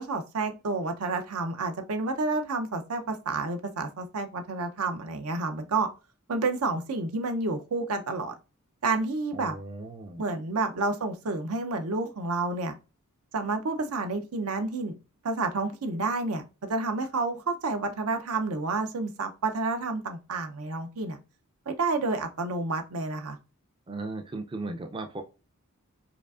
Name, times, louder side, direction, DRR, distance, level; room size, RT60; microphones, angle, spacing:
voice 1, 0.0-5.9 6.3-8.3 8.8-9.6 10.2-12.7 13.3-15.0 15.2-16.4 16.7-21.2 21.7-23.4, right 3 dB, 80° right, 0.6 m, -30 dB
voice 2, 9.3-10.2 23.9-25.2, right 2 dB, 20° right, 0.4 m, -36 dB
4.8 x 2.4 x 2.4 m
head